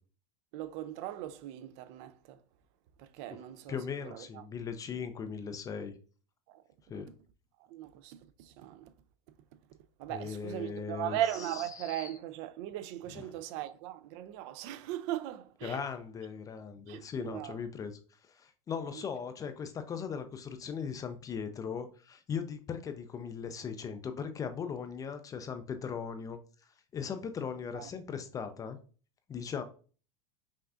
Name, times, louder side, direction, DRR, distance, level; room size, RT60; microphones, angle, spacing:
voice 1, 0.5-2.4 3.0-4.4 6.5-6.6 6.9-7.0 7.7-8.9 10.0-15.8 16.9-17.6 18.9-19.0 27.7-27.9, right 12 dB, 55° right, 0.4 m, -38 dB
voice 2, 3.7-5.9 6.9-7.1 10.1-11.2 11.8-12.1 13.1-13.2 15.6-26.4 26.9-28.8 29.3-29.6, left 6 dB, 20° left, 0.4 m, -38 dB
5.4 x 2.5 x 2.4 m
supercardioid pair, 130°, 18 cm